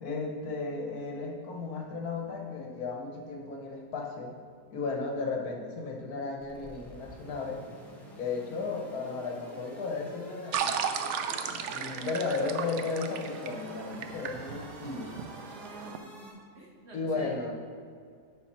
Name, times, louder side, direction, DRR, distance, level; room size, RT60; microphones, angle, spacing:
voice 1, 0.0-4.4 4.7-7.6 8.2-10.8 11.5-15.1 16.9-17.6, left 4 dB, 70° left, 2 dB, 1.4 m, -34 dB
sound 1, 6.4-16.3, equal, ahead, 1.0 m, -50 dB
sound 2, 10.5-16.0, right 7 dB, 70° right, 0.7 m, -35 dB
voice 2, 11.3-11.6 15.5-17.3, right 1 dB, 45° right, -2 dB, 1.3 m, -48 dB
11.5 x 4.3 x 4.2 m, 2.1 s
omnidirectional pair, 1.7 m